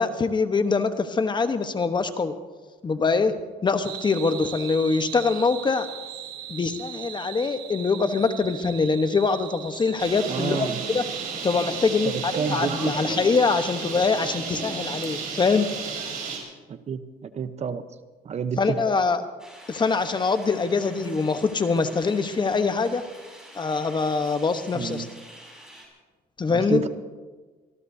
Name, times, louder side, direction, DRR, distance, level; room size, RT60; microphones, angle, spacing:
voice 1, 0.0-2.3 2.8-5.9 6.5-11.0 11.4-15.7 18.6-19.2 19.7-23.0 23.5-25.1 26.4-26.8, left 4 dB, 25° left, 9 dB, 1.1 m, -24 dB
sound 1, 3.8-12.7, right 11 dB, 80° right, 1.1 m, -40 dB
Bird, 10.0-16.4, right 5 dB, 55° right, 4.9 m, -32 dB
voice 2, 10.3-10.8 12.0-13.0 16.7-17.8 18.2-18.8 24.7-25.1 26.5-26.9, right 6 dB, 40° right, 11 dB, 0.9 m, -30 dB
sound 2, 19.4-25.9, equal, 5° right, 6.1 m, -47 dB
26.0 x 19.5 x 2.8 m, 1.3 s
cardioid pair, 110°, 17 cm